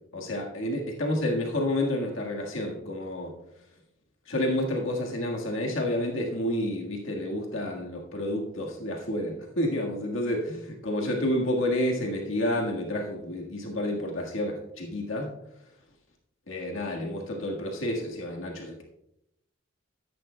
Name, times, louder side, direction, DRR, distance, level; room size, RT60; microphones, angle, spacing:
voice 1, 0.1-3.3 4.3-15.3 16.5-18.8, left 1 dB, 85° left, 0 dB, 1.6 m, -29 dB
13.5 x 10.5 x 2.2 m, 0.81 s
head